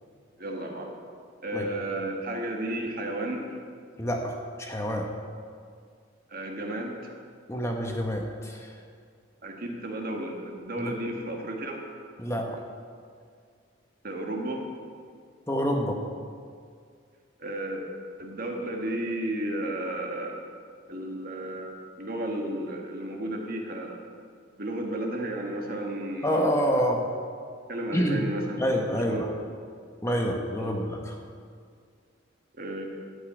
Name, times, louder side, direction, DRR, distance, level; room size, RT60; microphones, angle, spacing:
voice 1, 0.4-0.9 1.4-3.5 6.3-7.1 9.4-11.8 14.0-14.9 17.4-17.8 18.2-20.4 20.9-24.0 24.6-26.5 26.8-26.9 27.7-28.6 28.9-29.5 30.6-30.7 32.6-32.9, right 1 dB, 45° right, 1 dB, 1.5 m, -33 dB
voice 2, 4.0-5.1 7.5-8.7 10.8-10.9 12.2-12.7 15.5-16.0 26.2-27.0 27.9-28.2 28.6-29.3 30.0-31.0, equal, 15° left, 1 dB, 0.9 m, -27 dB
12.0 x 5.6 x 8.7 m, 2.1 s
head